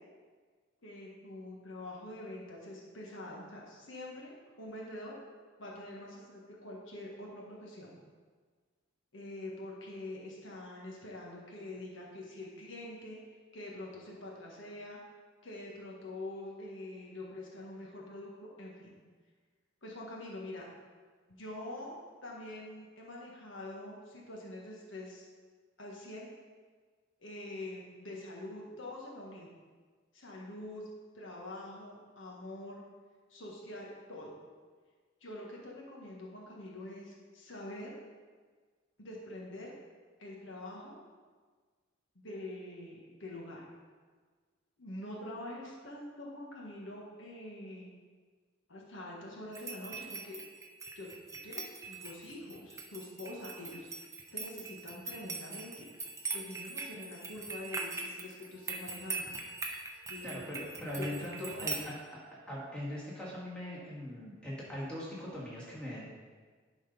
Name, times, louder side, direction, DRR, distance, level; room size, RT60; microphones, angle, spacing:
voice 1, 0.8-5.2 5.6-7.9 9.1-13.2 13.5-15.0 15.4-19.0 19.8-20.7 21.3-25.3 25.8-26.3 27.2-29.5 30.1-30.9 31.1-32.8 33.3-34.3 35.2-38.0 39.0-39.7 40.2-41.0 42.1-43.7 44.8-47.9 48.7-50.4 50.9-51.1 51.4-53.9 54.3-55.9 56.3-59.3 60.1-60.7 60.9-61.7, left 1 dB, 75° left, -3 dB, 1.5 m, -45 dB
sound 1, 49.5-61.8, right 4 dB, 15° right, 0.6 m, -42 dB
voice 2, 60.2-61.9 62.5-66.1, left 1 dB, 5° left, -7 dB, 2.0 m, -40 dB
11.0 x 4.1 x 5.3 m, 1.5 s
head